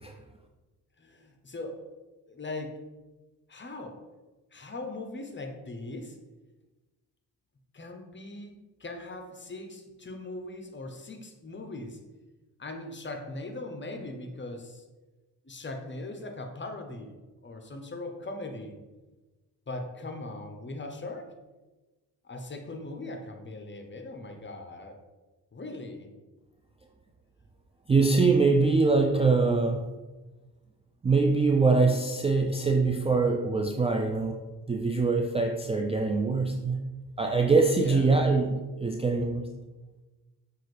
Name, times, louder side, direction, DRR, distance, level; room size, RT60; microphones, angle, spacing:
voice 1, 1.0-1.8 2.3-2.8 3.5-4.0 4.5-6.2 7.7-12.0 12.6-14.8 15.4-17.2 17.4-18.7 19.7-21.3 22.2-25.0 25.5-26.1 37.7-38.0, left 2 dB, 30° left, 4 dB, 0.8 m, -40 dB
voice 2, 27.9-29.9 31.0-34.4 34.7-36.8 37.2-39.5, right 4 dB, 15° right, 2 dB, 0.3 m, -23 dB
5.6 x 2.6 x 3.2 m, 1.2 s
supercardioid pair, 50°, 41 cm